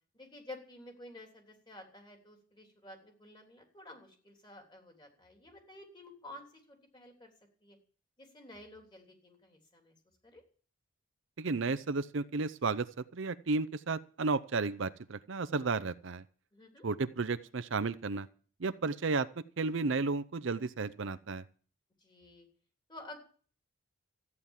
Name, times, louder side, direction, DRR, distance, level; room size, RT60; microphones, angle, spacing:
voice 1, 0.1-7.3 7.6-7.8 8.2-9.9 10.2-10.4 16.5-16.9 22.0-22.5 22.9-23.2, left 1 dB, 20° left, 2 dB, 3.4 m, -51 dB
voice 2, 11.4-16.2 16.8-18.3 18.6-21.4, right 3 dB, 60° right, 13 dB, 0.6 m, -33 dB
14.0 x 9.7 x 7.3 m, 0.43 s
head